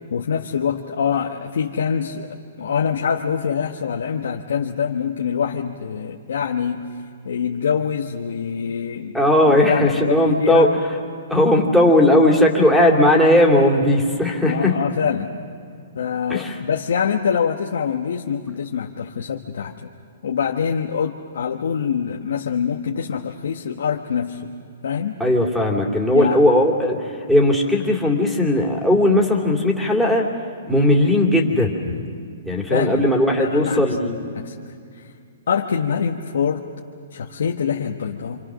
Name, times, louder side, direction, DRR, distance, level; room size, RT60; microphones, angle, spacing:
voice 1, 0.1-6.9 7.2-9.1 9.4-10.7 14.4-15.3 15.9-19.9 20.2-24.5 24.8-25.2 26.1-26.4 32.7-33.9 34.3-34.5 34.9-35.1 35.5-36.7 37.1-38.4, left 7 dB, 75° left, 1 dB, 1.3 m, -24 dB
voice 2, 9.1-10.7 11.3-14.8 16.3-16.6 25.2-27.0 27.3-30.3 30.7-31.9 32.5-34.3, left 1 dB, ahead, 0 dB, 2.9 m, -17 dB
27.0 x 27.0 x 6.4 m, 2.4 s
hypercardioid pair, 145°, 0 cm